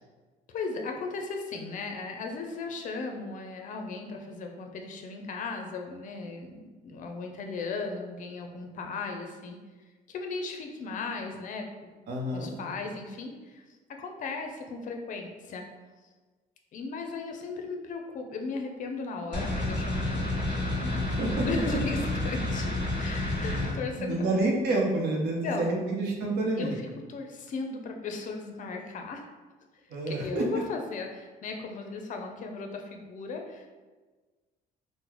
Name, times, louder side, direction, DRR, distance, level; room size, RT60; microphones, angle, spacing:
voice 1, 0.5-6.6 6.8-9.6 10.1-13.6 14.0-15.7 16.7-20.2 21.4-22.7 23.0-24.3 25.4-25.8 26.5-26.7 27.1-29.2 30.1-33.7, left 4 dB, 50° left, 3 dB, 0.5 m, -36 dB
voice 2, 12.1-12.8 20.8-21.6 23.3-26.8 29.9-30.5, right 2 dB, 80° right, 0 dB, 0.7 m, -29 dB
sound 1, 19.3-23.7, left 1 dB, 30° right, 1.4 m, -30 dB
3.7 x 2.1 x 2.9 m, 1.3 s
cardioid pair, 110°, 17 cm